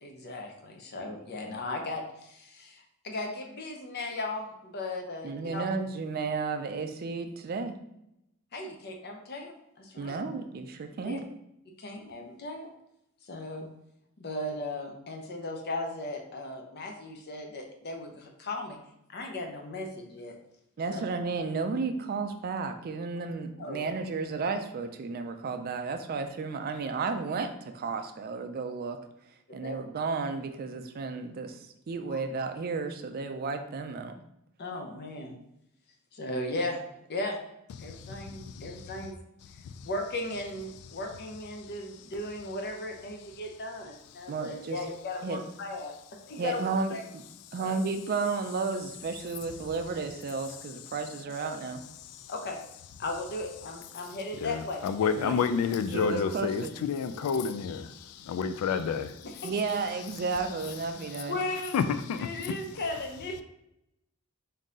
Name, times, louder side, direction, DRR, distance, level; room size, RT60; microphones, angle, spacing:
voice 1, 0.0-5.6 8.5-10.2 11.0-11.2 11.8-12.7 13.3-13.7 14.2-18.8 19.1-20.3 20.9-21.0 23.6-23.9 29.5-29.8 34.6-35.3 36.1-36.8 37.1-37.4 37.8-39.1 39.8-45.9 46.2-47.0 47.6-47.7 51.4-51.5 52.3-52.6 53.0-55.4 55.9-56.3 59.4-59.5 61.3-61.8 62.2-63.4, left 2 dB, 50° left, 3 dB, 0.6 m, -36 dB
voice 2, 5.2-7.8 10.0-11.2 20.8-29.0 29.5-34.1 44.3-44.8 45.2-45.4 46.4-47.0 47.5-51.8 55.2-55.4 55.9-56.7 59.4-61.4, right 4 dB, 45° right, 7 dB, 0.4 m, -33 dB
voice 3, 37.8-38.9 54.4-59.2 61.7-62.5, left 6 dB, 85° left, 12 dB, 0.3 m, -30 dB
3.8 x 2.7 x 3.6 m, 0.81 s
head